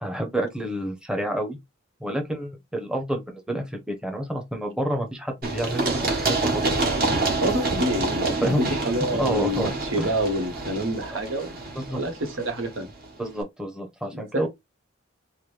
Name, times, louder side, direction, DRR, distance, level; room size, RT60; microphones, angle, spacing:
voice 1, 0.0-1.6 2.0-6.6 8.4-8.6 9.1-9.7 10.0-10.1 11.8-12.0 13.2-14.5, right 1 dB, 5° right, 0.8 m, -29 dB
Run, 5.4-13.1, right 3 dB, 50° right, 1.5 m, -27 dB
voice 2, 7.4-11.6 11.9-12.9 14.1-14.5, right 1 dB, 80° right, 1.2 m, -27 dB
4.8 x 2.2 x 3.2 m
head